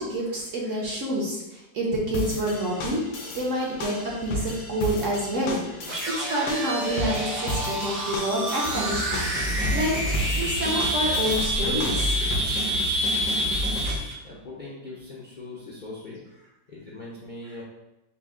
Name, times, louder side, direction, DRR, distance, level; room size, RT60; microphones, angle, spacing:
voice 1, 0.0-12.1 13.4-13.6, equal, 55° right, -3 dB, 1.0 m, -28 dB
sound 1, 2.1-12.8, left 1 dB, 80° left, 1.4 m, -34 dB
sound 2, 5.9-14.1, right 1 dB, 85° right, 1.7 m, -28 dB
sound 3, 8.6-14.0, equal, 5° right, 0.4 m, -30 dB
voice 2, 14.2-16.2 16.7-17.6, left 2 dB, 60° left, -6 dB, 0.5 m, -40 dB
5.7 x 2.0 x 3.6 m, 0.95 s
omnidirectional pair, 1.9 m